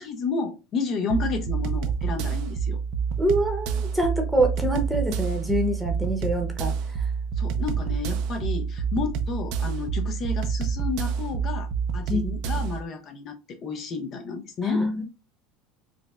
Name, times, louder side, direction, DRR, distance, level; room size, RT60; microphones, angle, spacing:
voice 1, 0.0-2.8 7.4-14.8, left 4 dB, 40° left, 0.6 m, -31 dB
sound 1, 1.1-12.8, right 6 dB, 65° right, 0.4 m, -28 dB
voice 2, 3.2-7.0 12.1-12.4 14.6-15.0, right 1 dB, 5° right, 0.9 m, -25 dB
4.8 x 2.1 x 2.3 m
supercardioid pair, 125°, 0 cm